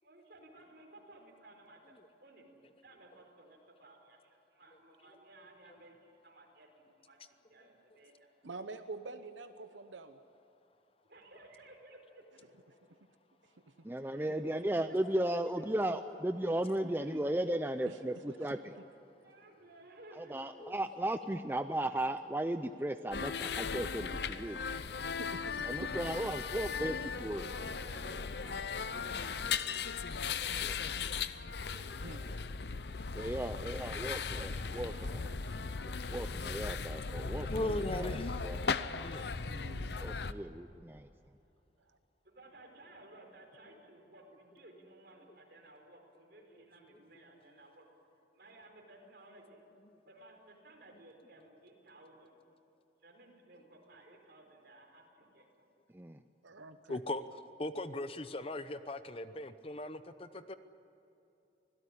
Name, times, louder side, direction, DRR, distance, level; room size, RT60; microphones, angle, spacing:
voice 1, 0.0-1.9 2.2-2.5 2.8-7.2 7.5-8.3 11.0-12.5 14.0-15.2 16.7-17.2 17.6-17.9 19.2-20.4 23.7-25.1 26.5-31.0 31.4-32.2 33.4-35.6 36.0-36.4 40.0-40.6 42.2-47.9 48.3-49.6 50.0-52.3 53.0-55.7, right 2 dB, 55° right, 1 dB, 4.8 m, -57 dB
voice 2, 8.4-10.2 13.7-13.8 14.3-14.4 17.8-18.8 25.0-26.3 32.0-32.2 39.4-40.1 41.8-42.0 56.4-57.0, right 3 dB, 85° right, 9 dB, 1.0 m, -47 dB
voice 3, 13.8-18.6 20.2-24.1 24.4-24.6 25.7-26.9 27.2-27.5 33.1-34.9 36.1-38.1 38.4-38.6 40.0-41.1 55.9-56.2, right 1 dB, 10° right, 9 dB, 0.5 m, -35 dB
voice 4, 15.0-15.3 16.5-17.7 18.7-18.8 20.6-20.7 23.1-23.2 29.1-29.2 37.5-38.4 39.0-39.3 56.9-57.2 57.6-60.5, left 1 dB, 30° left, 12 dB, 0.7 m, -39 dB
sound 1, 23.1-40.3, left 5 dB, 65° left, 0.7 m, -37 dB
25.5 x 17.0 x 10.0 m, 2.8 s
head